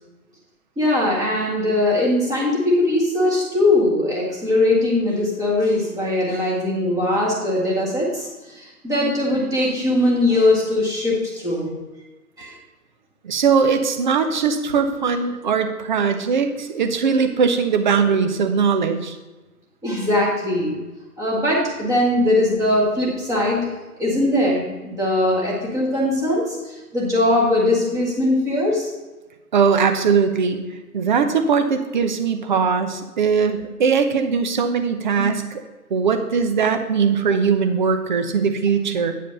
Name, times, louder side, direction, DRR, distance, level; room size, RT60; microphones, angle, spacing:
voice 1, 0.8-11.7 12.4-12.5 19.8-20.8 21.2-23.7 24.0-28.9, left 1 dB, 5° right, -5 dB, 1.7 m, -20 dB
voice 2, 13.2-19.2 29.5-30.6 30.9-35.4 35.9-39.1, right 6 dB, 30° right, 7 dB, 0.7 m, -20 dB
9.2 x 5.1 x 5.3 m, 1.1 s
figure-of-eight pair, 135°, 46 cm